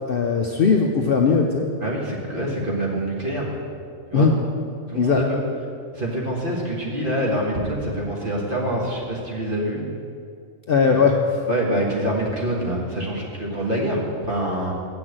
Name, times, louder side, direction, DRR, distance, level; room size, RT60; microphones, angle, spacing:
voice 1, 0.1-1.7 4.1-4.3 4.9-5.2 10.7-11.2, left 5 dB, 55° left, 2 dB, 0.7 m, -18 dB
voice 2, 1.8-3.5 4.1-4.3 4.9-5.4 5.9-9.8 10.9-11.0 11.5-14.7, right 1 dB, 40° right, -3 dB, 1.7 m, -25 dB
7.9 x 6.0 x 7.6 m, 2.3 s
omnidirectional pair, 1.4 m